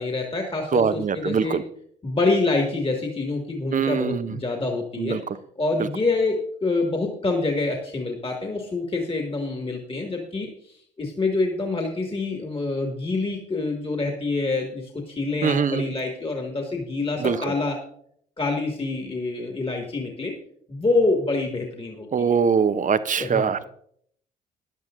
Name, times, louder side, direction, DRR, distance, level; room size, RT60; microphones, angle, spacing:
voice 1, 0.0-1.6 2.0-5.2 5.6-17.8 18.4-20.3 20.7-22.4 23.2-23.6, left 3 dB, 25° left, 2 dB, 2.2 m, -26 dB
voice 2, 0.7-1.6 3.7-4.4 5.0-5.2 15.4-15.9 17.2-17.5 22.1-23.6, right 6 dB, 40° right, 13 dB, 0.8 m, -22 dB
16.5 x 10.5 x 2.6 m, 0.65 s
hypercardioid pair, 45°, 21 cm